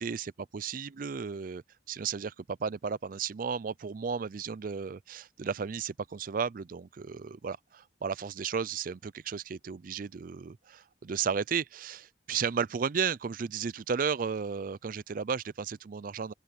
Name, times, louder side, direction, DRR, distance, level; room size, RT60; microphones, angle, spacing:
voice 1, 0.0-16.3, right 6 dB, 50° right, 0.4 m, -34 dB
open air
head